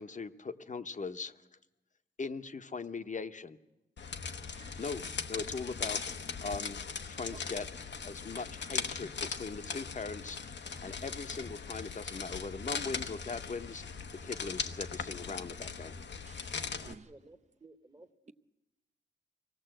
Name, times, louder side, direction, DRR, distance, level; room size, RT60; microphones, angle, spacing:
voice 1, 0.0-1.4 2.2-3.6 4.8-5.0 5.3-6.0 6.4-6.8 7.1-13.8 14.2-16.0, left 4 dB, 45° left, 0.9 m, -40 dB
sound 1, 4.0-16.9, left 5 dB, 80° left, 1.0 m, -39 dB
voice 2, 16.3-17.1, right 5 dB, 40° right, 0.7 m, -52 dB
voice 3, 17.1-18.3, right 2 dB, 25° right, 1.2 m, -56 dB
25.0 x 18.0 x 7.8 m
wide cardioid pair, 120°, 18 cm